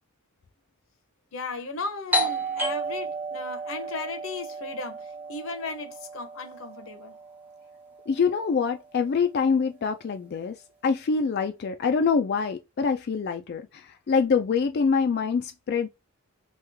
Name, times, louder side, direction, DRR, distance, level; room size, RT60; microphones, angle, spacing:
voice 1, 1.3-7.2, left 3 dB, 65° left, 0.8 m, -36 dB
Doorbell, 2.1-7.5, right 1 dB, 5° right, 0.7 m, -32 dB
voice 2, 8.1-10.6 10.8-15.9, left 5 dB, 45° left, 0.3 m, -25 dB
3.0 x 2.4 x 3.4 m
head